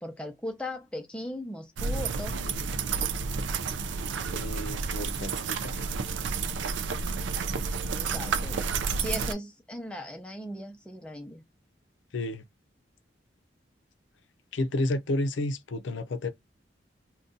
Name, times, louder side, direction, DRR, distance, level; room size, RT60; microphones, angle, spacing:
voice 1, 0.0-2.6 7.7-11.4, left 1 dB, 5° left, 0.6 m, -38 dB
sound 1, 1.8-9.3, right 5 dB, 80° right, 0.4 m, -30 dB
voice 2, 4.3-5.9 12.1-12.4 14.5-16.3, left 1 dB, 90° left, 0.5 m, -31 dB
2.6 x 2.3 x 3.7 m
head